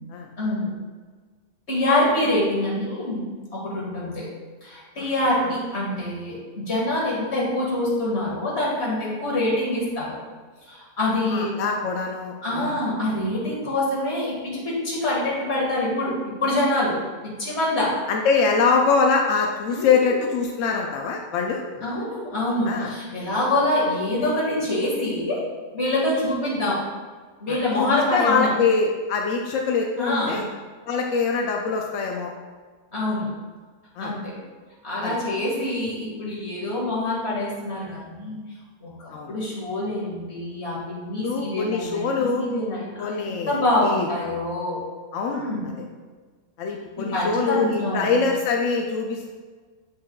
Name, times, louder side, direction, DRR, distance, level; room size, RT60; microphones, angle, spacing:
voice 1, 0.4-0.7 1.7-3.2 3.5-4.3 4.6-10.2 10.7-11.5 12.4-16.1 16.4-17.0 17.2-17.9 19.7-20.2 21.8-25.4 25.7-26.8 27.4-28.5 30.0-30.4 32.9-33.3 34.0-34.4 34.8-38.4 38.8-44.8 45.3-45.6 47.0-48.3, left 1 dB, 40° left, -5 dB, 2.0 m, -25 dB
voice 2, 11.3-12.7 18.1-21.6 22.7-22.9 27.5-30.4 30.8-32.3 34.0-34.1 35.0-35.2 39.1-39.3 41.2-42.5 43.0-44.1 45.1-45.7 46.6-49.3, left 5 dB, 70° left, 1 dB, 0.7 m, -24 dB
8.0 x 5.4 x 2.3 m, 1.5 s
omnidirectional pair, 1.9 m